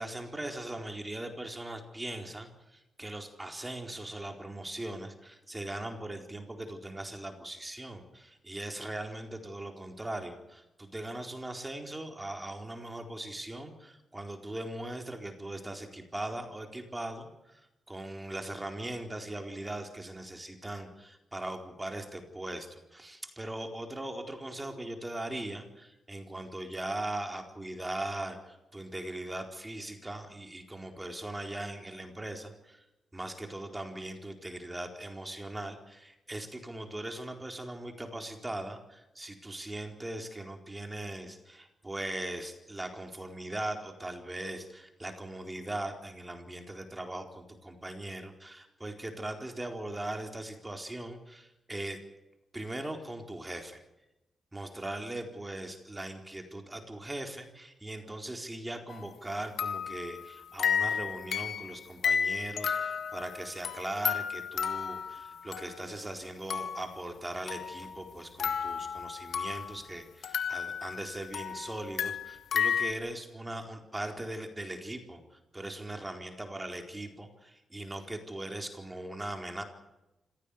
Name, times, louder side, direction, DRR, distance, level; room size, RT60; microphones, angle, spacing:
voice 1, 0.0-32.8 33.1-52.0 52.5-53.8 54.5-79.6, right 1 dB, 15° right, 4 dB, 4.2 m, -40 dB
sound 1, 58.9-59.1 59.6-66.1 66.5-67.0 67.5-69.8 70.2-72.9, left 7 dB, 80° left, 1.7 m, -33 dB
26.5 x 16.5 x 8.6 m, 0.95 s
cardioid pair, 80°, 0 cm